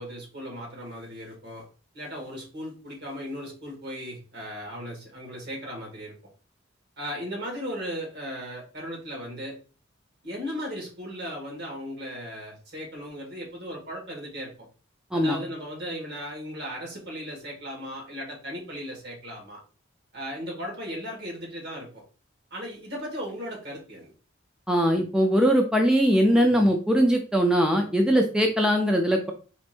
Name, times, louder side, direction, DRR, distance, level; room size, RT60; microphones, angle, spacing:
voice 1, 0.0-1.6 1.9-6.1 7.0-9.6 10.2-14.5 15.1-19.6 20.1-22.0 22.5-24.1, equal, 60° right, -1 dB, 2.0 m, -36 dB
voice 2, 24.7-29.3, equal, 5° right, 2 dB, 0.5 m, -21 dB
4.3 x 2.6 x 4.4 m, 0.37 s
head